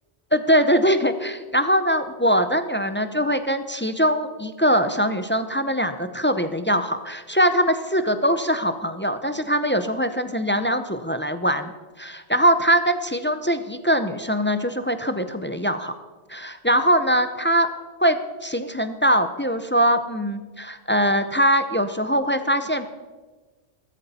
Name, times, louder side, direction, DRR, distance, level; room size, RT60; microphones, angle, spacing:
voice 1, 0.3-11.7 12.0-15.9 16.3-17.7 18.0-22.9, equal, 15° left, 9 dB, 0.5 m, -22 dB
15.0 x 13.5 x 4.3 m, 1.3 s
omnidirectional pair, 1.1 m